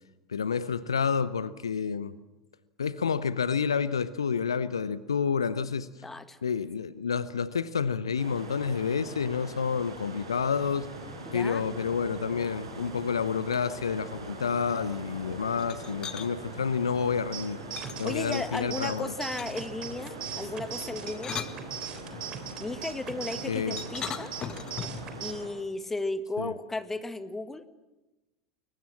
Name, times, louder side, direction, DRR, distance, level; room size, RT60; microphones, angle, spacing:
voice 1, 0.3-2.2 2.8-5.9 6.4-10.9 11.3-17.6 18.0-19.1 23.4-23.8 26.4-26.5, left 6 dB, 75° left, 17 dB, 0.9 m, -29 dB
voice 2, 6.0-6.4 11.3-11.6 18.0-21.4 22.6-24.3 25.2-27.6, left 2 dB, 10° left, 12 dB, 1.7 m, -35 dB
sound 1, 8.1-25.5, right 2 dB, 75° right, 5.4 m, -42 dB
sound 2, 15.6-16.3 17.8-18.7 19.4-19.8 20.9-22.2 23.8-25.1, left 7 dB, 30° left, 1.7 m, -39 dB
sound 3, 17.3-25.3, right 9 dB, 35° right, 3.5 m, -41 dB
29.5 x 22.5 x 7.5 m, 1.0 s
figure-of-eight pair, 80°, 3 cm